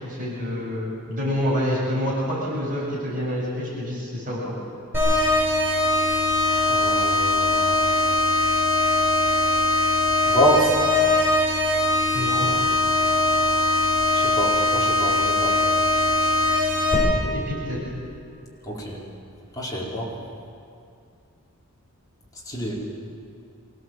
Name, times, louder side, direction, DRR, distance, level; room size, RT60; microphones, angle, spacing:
voice 1, 0.0-4.5 12.1-12.5 17.2-17.8, equal, 40° right, -5 dB, 7.0 m, -27 dB
sound 1, 4.9-16.9, left 2 dB, 10° right, 7.5 m, -21 dB
voice 2, 6.7-7.7 10.3-10.8 14.1-15.6 18.7-19.0 19.6-20.1 22.5-22.7, equal, 15° left, -6 dB, 4.6 m, -26 dB
24.0 x 17.5 x 7.7 m, 2.4 s
head